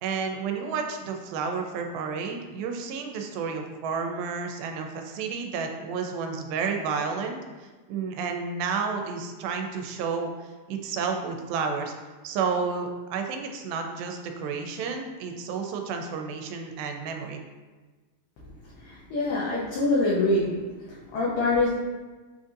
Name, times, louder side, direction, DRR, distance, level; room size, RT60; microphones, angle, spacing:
voice 1, 0.0-7.4 7.9-10.3 10.7-11.9 12.2-17.4, right 5 dB, 90° right, 4 dB, 2.4 m, -31 dB
voice 2, 18.8-20.6 20.9-21.7, left 2 dB, 75° left, -7 dB, 2.2 m, -25 dB
7.5 x 2.6 x 2.5 m, 1.3 s
omnidirectional pair, 4.1 m